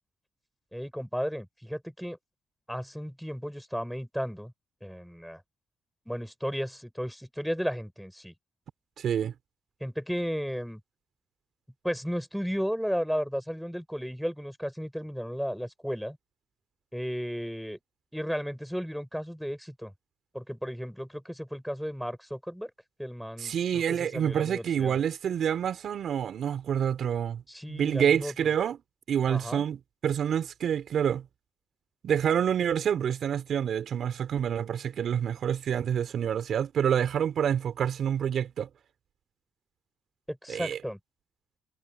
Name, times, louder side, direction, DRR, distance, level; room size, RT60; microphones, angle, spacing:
voice 1, 0.7-2.2 2.7-4.5 4.8-5.4 6.1-8.3 9.8-10.8 11.8-16.2 16.9-17.8 18.1-19.9 20.3-22.7 23.0-25.0 27.5-28.5 29.3-29.6 40.3-41.0, equal, ahead, 5.8 m, -34 dB
voice 2, 9.0-9.3 23.4-27.4 27.7-28.8 29.1-31.2 32.0-38.7 40.5-40.8, right 8 dB, 60° right, 4.5 m, -27 dB
cardioid pair, 90°, 0 cm